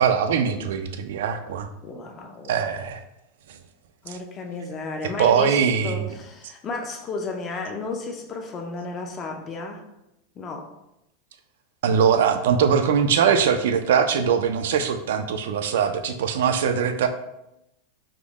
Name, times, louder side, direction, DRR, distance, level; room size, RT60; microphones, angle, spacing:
voice 1, 0.0-1.7 2.5-3.0 4.1-4.2 5.2-6.1 11.8-17.1, right 7 dB, 80° right, 8 dB, 0.3 m, -21 dB
voice 2, 1.8-2.7 4.0-9.8 10.4-10.7, left 3 dB, 25° left, 3 dB, 0.4 m, -33 dB
3.5 x 2.0 x 3.5 m, 0.87 s
supercardioid pair, 155°, 0 cm